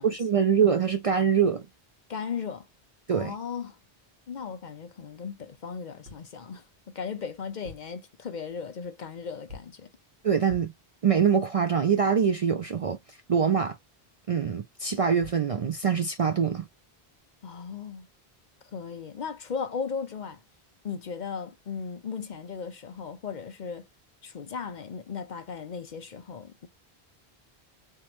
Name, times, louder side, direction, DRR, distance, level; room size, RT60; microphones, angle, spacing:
voice 1, 0.0-1.6 3.1-3.3 10.2-10.7 11.0-13.0 13.3-13.8 14.3-16.7, right 7 dB, 50° right, 0.4 m, -24 dB
voice 2, 2.1-2.7 3.1-3.8 4.3-6.6 6.9-9.9 17.4-18.1 18.7-20.4 20.8-23.9 24.2-26.7, left 6 dB, 50° left, 0.7 m, -36 dB
sound 1, 6.0-6.4 7.5-8.0 9.5-9.9 10.5-10.9 14.9-15.0 15.2-15.5, left 3 dB, 80° right, 1.5 m, -46 dB
3.4 x 3.0 x 3.0 m
omnidirectional pair, 1.0 m